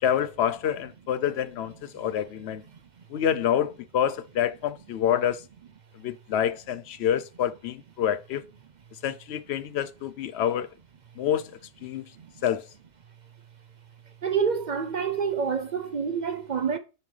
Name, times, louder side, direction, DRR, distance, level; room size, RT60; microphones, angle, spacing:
voice 1, 0.0-2.6 3.1-5.4 5.9-8.4 9.0-10.7 11.2-11.5 11.8-12.1 12.4-12.7, left 9 dB, 70° left, 0.8 m, -27 dB
voice 2, 14.2-16.8, right 6 dB, 55° right, 0.5 m, -27 dB
7.0 x 5.6 x 3.2 m
omnidirectional pair, 1.2 m